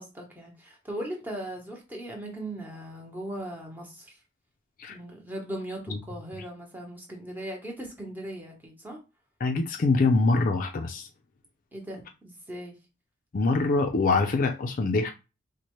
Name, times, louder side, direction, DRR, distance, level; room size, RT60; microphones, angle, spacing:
voice 1, 0.0-4.2 4.9-9.0 11.7-12.7, right 1 dB, 10° right, 1.0 m, -38 dB
voice 2, 9.4-11.1 13.3-15.1, left 3 dB, 45° left, 0.4 m, -24 dB
4.2 x 2.1 x 3.0 m
head